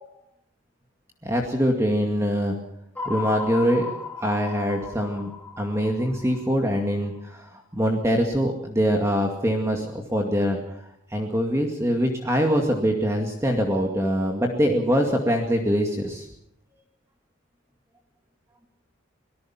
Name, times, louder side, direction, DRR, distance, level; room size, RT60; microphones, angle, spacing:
voice 1, 1.2-2.6 3.1-3.9 4.2-10.6 11.1-16.3, equal, 15° right, 2 dB, 2.2 m, -23 dB
sound 1, 3.0-7.2, left 4 dB, 5° left, 1.4 m, -36 dB
26.0 x 18.5 x 5.9 m, 0.74 s
head